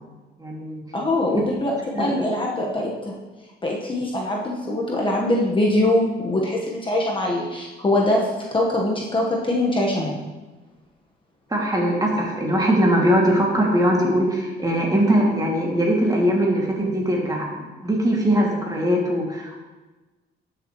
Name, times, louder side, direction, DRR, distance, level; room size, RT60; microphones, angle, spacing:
voice 1, 0.4-0.8 1.3-1.4 1.9-2.3 11.5-19.6, equal, 20° right, -2 dB, 2.3 m, -21 dB
voice 2, 0.9-1.7 2.0-3.1 3.6-10.2, left 1 dB, 25° left, -2 dB, 1.3 m, -23 dB
12.0 x 6.8 x 3.1 m, 1.2 s
cardioid pair, 90°, 20 cm